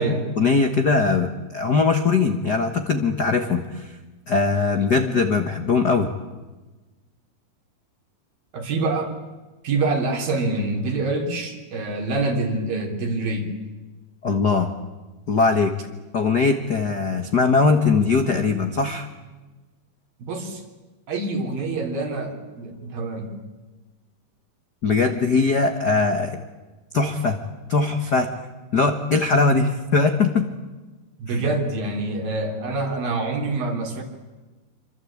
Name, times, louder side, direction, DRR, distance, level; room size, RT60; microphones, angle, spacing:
voice 1, 0.4-3.9 4.3-6.1 14.2-14.7 15.3-15.7 16.1-19.1 24.8-26.4 26.9-27.4 27.7-28.3 28.7-30.5 31.3-31.4, left 4 dB, 75° left, 6 dB, 0.9 m, -20 dB
voice 2, 8.5-9.1 9.6-13.6 20.2-20.6 21.1-23.4 31.2-34.0, right 3 dB, 65° right, 3 dB, 5.1 m, -26 dB
26.5 x 25.0 x 8.7 m, 1.2 s
omnidirectional pair, 4.6 m